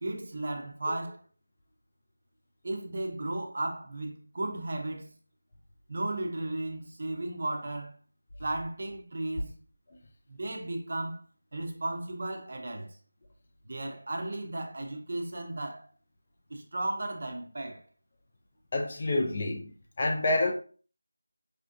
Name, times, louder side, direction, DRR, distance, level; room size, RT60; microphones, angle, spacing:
voice 1, 0.0-1.2 2.6-5.1 5.9-8.0 8.4-9.6 10.3-11.2 11.5-12.9 13.7-15.9 16.5-17.8, right 2 dB, 35° right, 0.5 m, -35 dB
voice 2, 18.7-20.5, left 2 dB, 25° left, 0.3 m, -28 dB
4.8 x 2.6 x 2.4 m
figure-of-eight pair, 180°, 0 cm